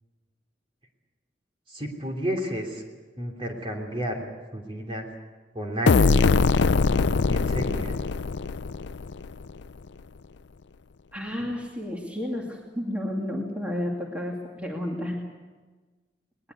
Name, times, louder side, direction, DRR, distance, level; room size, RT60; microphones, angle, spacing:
voice 1, 1.7-2.8 3.2-4.2 4.5-5.1 5.5-6.3 7.0-8.0, equal, 30° right, 2 dB, 3.0 m, -32 dB
sound 1, 5.9-9.5, left 4 dB, 80° left, 0.6 m, -22 dB
voice 2, 11.1-15.2, left 1 dB, 10° right, -1 dB, 2.5 m, -31 dB
20.5 x 20.0 x 8.3 m, 1.3 s
head